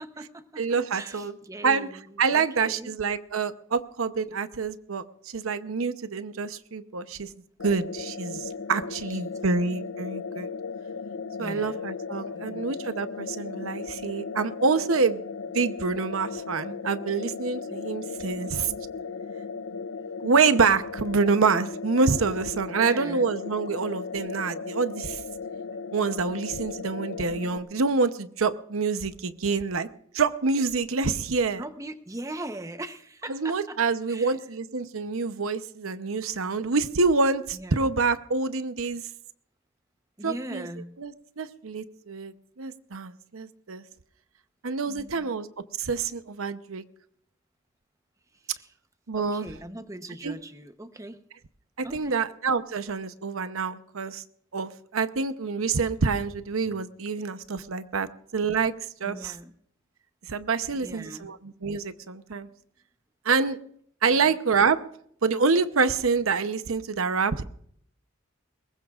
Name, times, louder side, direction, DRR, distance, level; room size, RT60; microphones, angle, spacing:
voice 1, 0.0-3.0 9.0-9.6 11.4-11.8 12.3-12.7 22.7-23.3 31.6-33.8 34.1-34.4 37.5-37.9 40.2-41.0 44.9-45.4 48.3-48.7 49.2-51.2 51.8-52.2 59.0-59.5 60.7-61.3 64.1-64.3, right 1 dB, 15° right, 9 dB, 0.8 m, -40 dB
voice 2, 0.6-1.3 1.6-1.9 2.2-7.3 7.6-10.5 11.4-15.2 15.5-18.7 20.2-25.2 25.9-29.9 30.1-31.6 33.3-39.1 40.2-40.6 41.0-43.8 44.6-45.5 45.8-46.8 49.1-49.5 50.2-50.4 51.8-54.2 54.5-58.7 59.0-59.3 60.3-62.5 63.2-63.6 64.0-64.8 65.2-67.5, right 4 dB, 85° right, 11 dB, 0.8 m, -26 dB
sound 1, 7.6-27.6, left 5 dB, 80° left, 0.6 m, -36 dB
22.0 x 20.0 x 2.4 m, 0.65 s
head